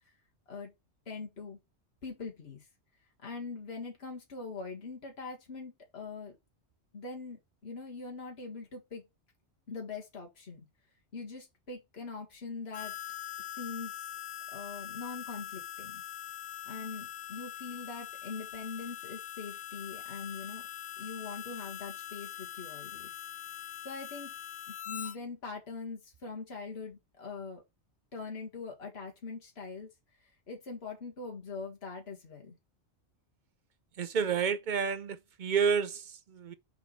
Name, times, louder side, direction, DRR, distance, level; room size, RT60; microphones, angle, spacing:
voice 1, 1.1-1.6 2.0-2.7 3.2-6.4 6.9-9.1 9.7-10.7 11.1-13.0 13.6-14.1 14.5-16.0 16.7-20.6 21.0-23.1 23.8-24.3 24.7-27.6 28.1-29.9 30.5-32.6, left 4 dB, 60° left, 2.0 m, -42 dB
Harmonica, 12.7-25.2, left 11 dB, 80° left, 1.1 m, -43 dB
voice 2, 34.0-36.5, right 6 dB, 50° right, 0.6 m, -30 dB
5.8 x 4.4 x 5.6 m
omnidirectional pair, 1.2 m